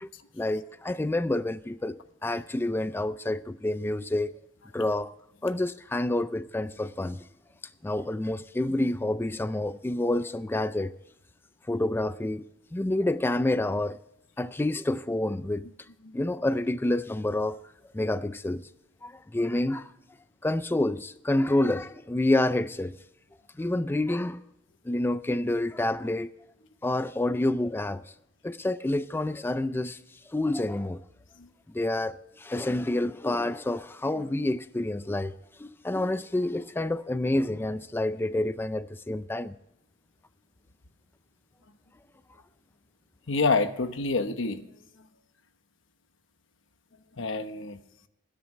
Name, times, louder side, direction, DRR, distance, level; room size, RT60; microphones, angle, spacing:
voice 1, 0.3-4.3 4.7-5.1 5.4-7.2 7.8-10.9 11.7-12.4 12.7-14.0 14.4-15.7 16.1-17.6 17.9-18.7 19.0-19.9 20.4-22.9 23.6-24.4 24.8-26.3 26.8-28.1 28.4-30.0 30.3-31.0 31.7-35.3 35.6-39.6, left 1 dB, 10° left, 0.4 m, -28 dB
voice 2, 43.3-44.6 47.2-47.8, left 3 dB, 85° left, 1.1 m, -27 dB
20.5 x 10.5 x 3.2 m
head